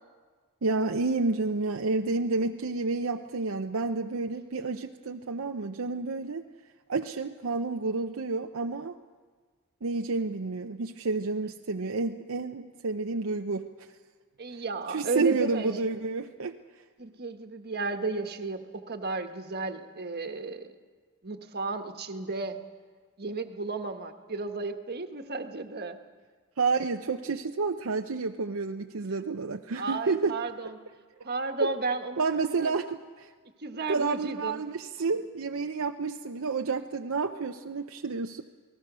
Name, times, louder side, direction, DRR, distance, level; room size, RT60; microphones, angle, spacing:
voice 1, 0.6-6.4 6.9-8.9 9.8-13.7 14.9-16.6 26.6-30.3 32.2-33.3 33.9-38.4, right 3 dB, 70° right, 4 dB, 0.7 m, -30 dB
voice 2, 14.4-15.7 17.0-20.7 21.2-22.6 23.2-26.0 29.7-30.7 31.2-32.8 33.6-34.6, right 3 dB, 50° right, 6 dB, 1.4 m, -34 dB
28.5 x 19.0 x 6.2 m, 1.5 s
head